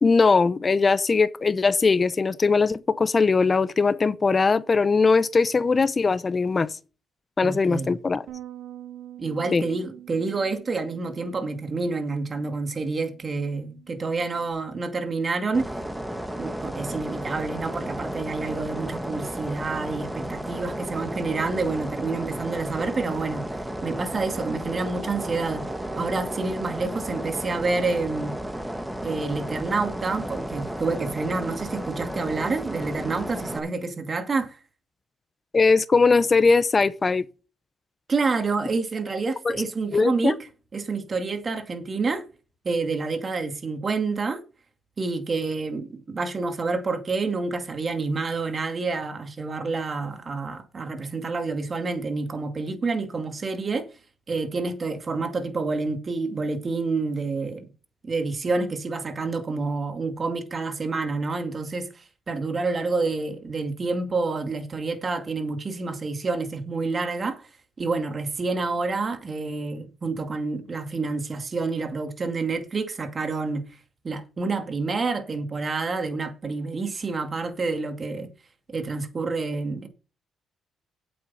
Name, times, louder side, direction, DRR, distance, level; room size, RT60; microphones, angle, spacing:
voice 1, 0.0-6.7 7.4-8.2 9.5-9.6 35.5-37.3 39.4-39.6 39.9-40.4, left 4 dB, 30° left, 0.9 m, -20 dB
voice 2, 7.4-7.9 9.2-15.7 16.4-25.6 25.9-28.3 29.0-34.6 38.1-40.4 40.7-42.3 42.6-44.4 45.0-53.9 54.3-57.7 58.0-67.5 67.8-73.6 74.0-78.3 78.7-79.9, right 3 dB, 35° right, 2.3 m, -28 dB
Bass guitar, 8.3-14.5, right 12 dB, 85° right, 2.6 m, -46 dB
sound 1, 15.5-33.6, right 1 dB, 10° right, 1.6 m, -33 dB
sound 2, 24.3-26.5, right 5 dB, 65° right, 3.5 m, -43 dB
8.5 x 8.0 x 5.5 m
cardioid pair, 90°, 0 cm